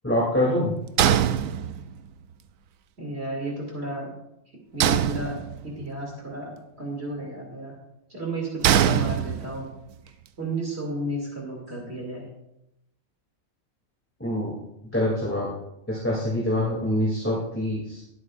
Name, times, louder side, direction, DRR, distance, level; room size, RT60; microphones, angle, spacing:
voice 1, 0.0-0.7 14.2-14.5 14.9-15.5 15.9-18.0, left 1 dB, 10° left, -5 dB, 2.7 m, -25 dB
sound 1, 1.0-2.1 4.8-5.8 8.6-9.7, right 10 dB, 80° right, 1.0 m, -23 dB
voice 2, 3.0-4.1 4.7-7.8 8.1-9.7 10.0-12.3, right 1 dB, 50° right, -2 dB, 2.8 m, -33 dB
21.0 x 8.3 x 2.5 m, 0.85 s
omnidirectional pair, 1.4 m